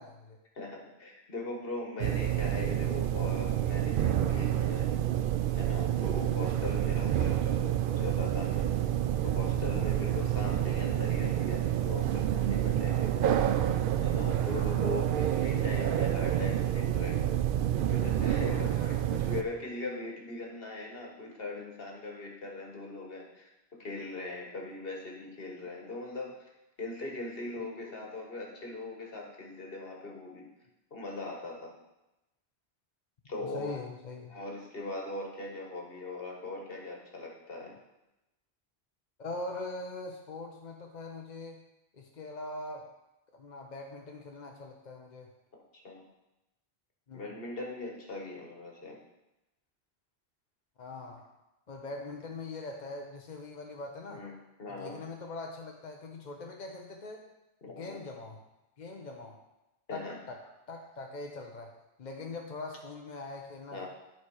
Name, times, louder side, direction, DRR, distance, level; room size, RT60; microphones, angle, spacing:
voice 1, 0.0-0.4 7.0-7.1 9.7-10.0 14.2-14.5 18.4-18.8 33.4-34.4 39.2-41.6 41.9-42.9 43.3-45.3 47.1-47.2 50.8-51.3 51.7-54.3 54.7-57.3 57.7-58.4 58.8-59.4 59.9-60.4 60.7-63.9, left 2 dB, 45° left, 1 dB, 0.8 m, -42 dB
voice 2, 0.5-4.9 5.5-8.7 9.2-13.1 14.0-17.2 17.9-26.5 26.8-30.5 30.9-31.7 33.2-33.8 34.3-37.8 45.5-46.0 47.1-49.0 54.1-55.0 57.6-58.0 59.9-60.2 63.7-63.9, left 2 dB, 65° left, 0 dB, 1.6 m, -40 dB
sound 1, 2.0-19.4, right 11 dB, 60° right, 0.7 m, -28 dB
11.0 x 4.5 x 4.8 m, 0.95 s
omnidirectional pair, 1.1 m